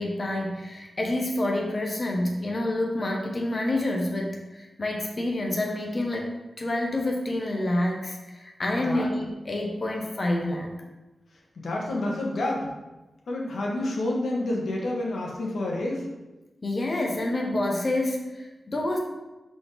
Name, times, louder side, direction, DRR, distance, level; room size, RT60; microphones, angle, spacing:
voice 1, 0.0-6.3 6.6-10.7 16.6-19.0, left 1 dB, 35° left, 0 dB, 1.0 m, -28 dB
voice 2, 11.5-12.7 13.3-16.0, left 1 dB, 90° left, -2 dB, 1.6 m, -29 dB
12.0 x 4.2 x 3.5 m, 1.1 s
wide cardioid pair, 135°, 0 cm